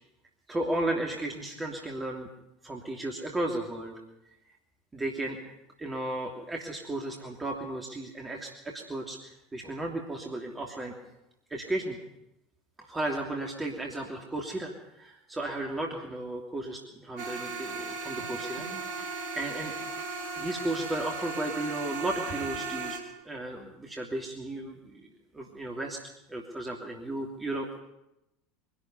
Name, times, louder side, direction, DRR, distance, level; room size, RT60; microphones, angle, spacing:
voice 1, 0.5-2.3 2.6-4.0 4.9-10.9 11.5-12.0 12.8-19.8 20.4-25.1 25.3-26.0 26.3-27.8, right 1 dB, 15° right, 0 dB, 3.0 m, -34 dB
sound 1, 17.2-23.0, right 3 dB, 50° right, 4.6 m, -36 dB
24.0 x 12.5 x 9.5 m, 0.89 s
figure-of-eight pair, 75°, 0 cm